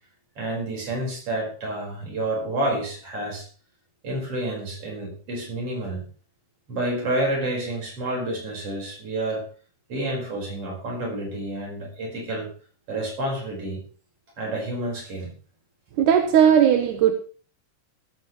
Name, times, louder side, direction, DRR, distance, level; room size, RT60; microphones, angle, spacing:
voice 1, 0.4-3.5 4.0-6.1 6.7-9.5 9.9-12.5 12.9-13.8 14.4-15.3, right 1 dB, 45° right, 0 dB, 6.0 m, -29 dB
voice 2, 16.0-17.1, right 9 dB, 80° right, 7 dB, 2.5 m, -17 dB
15.5 x 14.5 x 3.2 m, 0.40 s
omnidirectional pair, 3.6 m